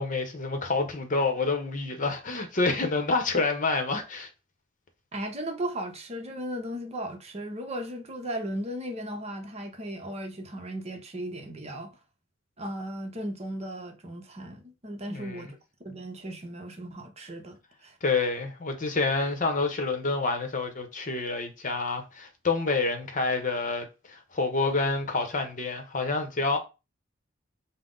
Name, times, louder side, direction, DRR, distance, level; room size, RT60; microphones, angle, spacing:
voice 1, 0.0-4.3 15.1-15.5 18.0-26.6, left 3 dB, 40° left, 0.8 m, -28 dB
voice 2, 5.1-11.9 12.6-15.6 15.8-17.9, right 1 dB, 35° right, 0.8 m, -36 dB
5.7 x 2.1 x 3.8 m
head